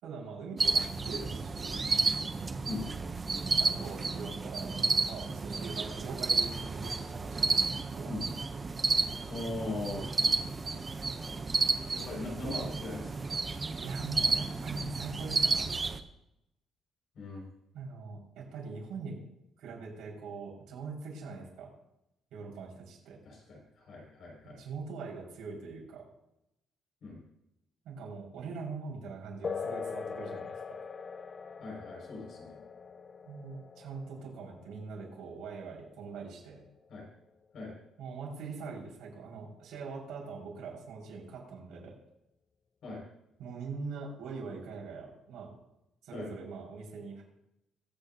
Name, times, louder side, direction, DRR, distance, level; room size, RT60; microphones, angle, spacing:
voice 1, 0.0-1.8 3.5-7.6 7.9-8.1 13.8-15.8 17.7-19.2 19.6-21.7 22.3-23.2 24.4-26.1 27.8-30.5 33.3-36.6 38.0-41.9 43.4-45.5 46.0-47.2, right 4 dB, 80° right, -3 dB, 4.9 m, -42 dB
sound 1, 0.6-16.0, right 3 dB, 20° right, 0.6 m, -31 dB
voice 2, 9.3-10.8 11.9-13.3 17.2-17.5 23.2-24.6 27.0-27.2 31.6-32.6 36.9-37.0 37.5-37.7 42.8-43.0 46.1-46.3, left 2 dB, 50° left, -2 dB, 5.3 m, -40 dB
sound 2, 29.4-37.4, left 5 dB, 25° left, 0.3 m, -42 dB
22.5 x 8.8 x 2.7 m, 0.86 s
cardioid pair, 175°, 0 cm